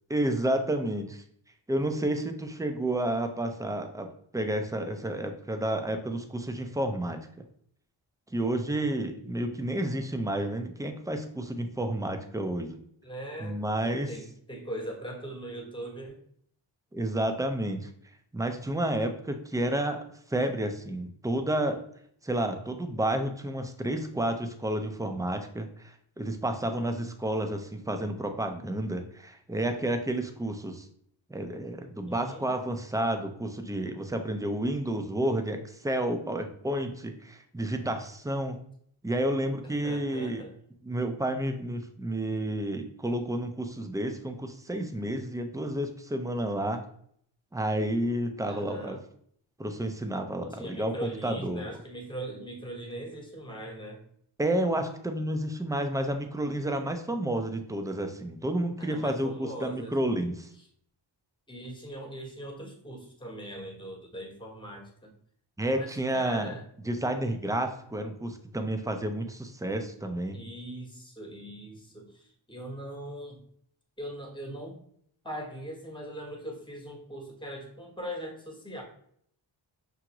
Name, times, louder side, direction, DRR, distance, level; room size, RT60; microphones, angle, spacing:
voice 1, 0.1-1.2 1.7-7.3 8.3-12.8 13.4-14.1 16.9-17.9 18.3-20.0 20.3-21.8 22.2-30.8 31.3-38.6 39.0-40.4 40.8-46.8 47.5-49.0 49.6-51.8 54.4-60.5 65.6-66.6 66.9-70.4, right 1 dB, 10° right, 5 dB, 0.4 m, -30 dB
voice 2, 13.0-13.6 13.8-16.2 32.1-32.5 39.8-40.5 40.9-41.0 48.5-49.0 50.5-54.0 58.8-60.0 61.5-65.1 65.7-66.6 70.3-73.4 74.0-74.8 75.2-78.8, right 1 dB, 10° left, 1 dB, 1.0 m, -40 dB
5.7 x 2.5 x 2.9 m, 0.65 s
wide cardioid pair, 95°, 47 cm